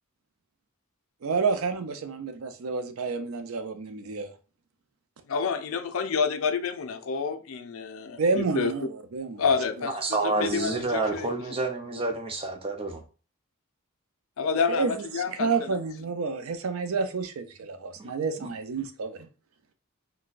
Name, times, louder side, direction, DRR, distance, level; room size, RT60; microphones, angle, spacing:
voice 1, 1.2-4.3 8.2-9.4 9.8-9.9 14.7-19.3, right 4 dB, 80° right, 0.5 m, -29 dB
voice 2, 5.3-8.7 9.4-10.0 10.2-11.3 14.4-15.8, left 5 dB, 75° left, 0.4 m, -28 dB
voice 3, 9.9-13.0 18.0-18.1 18.4-18.5, right 3 dB, 25° right, 0.5 m, -29 dB
3.9 x 2.2 x 2.4 m
head